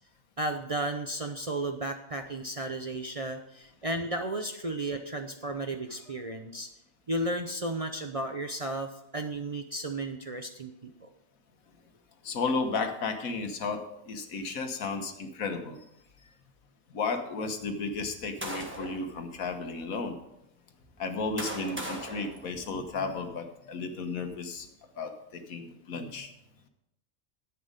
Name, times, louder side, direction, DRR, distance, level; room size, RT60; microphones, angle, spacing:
voice 1, 0.4-6.7 7.1-11.1, right 1 dB, 35° right, 5 dB, 0.6 m, -34 dB
voice 2, 12.2-15.8 16.9-20.2 21.0-24.7 25.0-26.3, left 4 dB, 90° left, 6 dB, 1.6 m, -33 dB
sound 1, 17.9-19.1 19.8-20.0 20.9-23.2, equal, 10° right, 1.4 m, -40 dB
11.0 x 8.6 x 5.1 m, 0.84 s
omnidirectional pair, 1.4 m